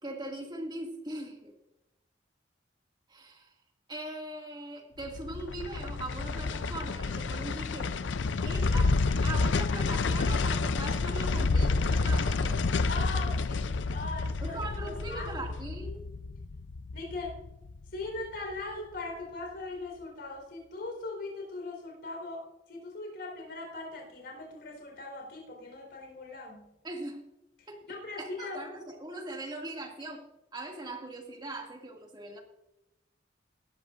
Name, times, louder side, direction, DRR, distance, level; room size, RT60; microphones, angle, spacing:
voice 1, 0.0-1.5 3.1-3.5 3.9-7.9 8.4-9.0 9.2-12.6 14.4-16.1 26.8-27.2 27.7-27.8 28.2-30.2 30.5-32.4, right 2 dB, 25° right, 1 dB, 2.2 m, -40 dB
sound 1, 5.0-18.2 18.5-18.6, left 3 dB, 85° left, 0.5 m, -29 dB
voice 2, 12.9-14.6 14.8-15.3 16.9-17.4 17.9-26.7 27.6-28.6, left 2 dB, 65° left, 0 dB, 4.2 m, -40 dB
19.0 x 13.0 x 2.6 m, 0.91 s
head